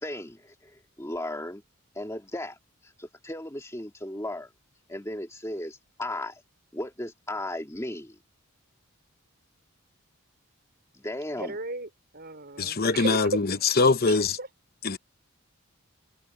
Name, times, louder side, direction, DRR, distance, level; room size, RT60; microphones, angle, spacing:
voice 1, 0.0-1.6 2.0-2.6 2.8-4.5 4.9-6.4 6.7-8.2 10.9-11.6, left 1 dB, 15° left, 2.1 m, -36 dB
voice 2, 11.4-13.7 14.0-14.5, right 2 dB, 45° right, 4.4 m, -35 dB
voice 3, 12.6-14.4 14.8-15.0, left 4 dB, 45° left, 0.9 m, -23 dB
head